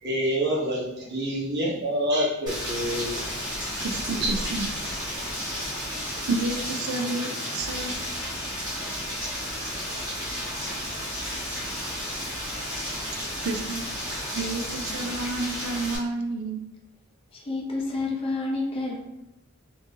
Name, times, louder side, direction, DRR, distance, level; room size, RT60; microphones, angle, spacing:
voice 1, 0.0-3.2 4.1-4.3, equal, 50° right, -3 dB, 0.9 m, -27 dB
Rain, 2.5-16.0, equal, 20° right, 1.2 m, -32 dB
voice 2, 3.8-4.7 6.3-7.9 13.4-13.9 14.3-16.6, right 3 dB, 75° right, 4 dB, 0.4 m, -30 dB
voice 3, 17.3-19.0, left 3 dB, 25° left, -2 dB, 0.6 m, -29 dB
3.6 x 2.6 x 2.7 m, 0.89 s
head